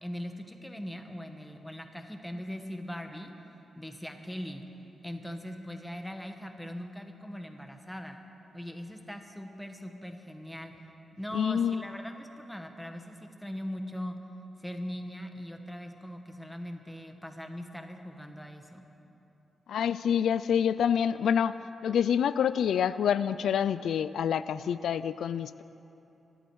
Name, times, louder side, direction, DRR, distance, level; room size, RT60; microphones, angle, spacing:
voice 1, 0.0-3.3 3.7-4.6 5.0-8.2 8.5-10.7 11.2-14.2 14.6-18.8, equal, 5° left, 5 dB, 1.1 m, -40 dB
voice 2, 11.3-11.8 19.7-21.6 21.8-25.6, left 8 dB, 85° left, 15 dB, 0.3 m, -27 dB
25.0 x 11.5 x 4.7 m, 2.9 s
wide cardioid pair, 145°, 0 cm